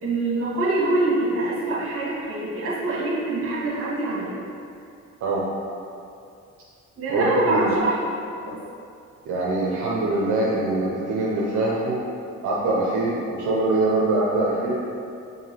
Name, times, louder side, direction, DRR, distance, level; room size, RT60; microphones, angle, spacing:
voice 1, 0.0-4.4 7.0-7.9 8.5-8.6, right 2 dB, 50° right, -6 dB, 1.4 m, -24 dB
voice 2, 7.1-7.7 9.3-12.0 12.4-14.8, right 2 dB, 70° right, -5 dB, 0.7 m, -23 dB
4.6 x 2.7 x 2.9 m, 2.5 s
cardioid pair, 90°, 30 cm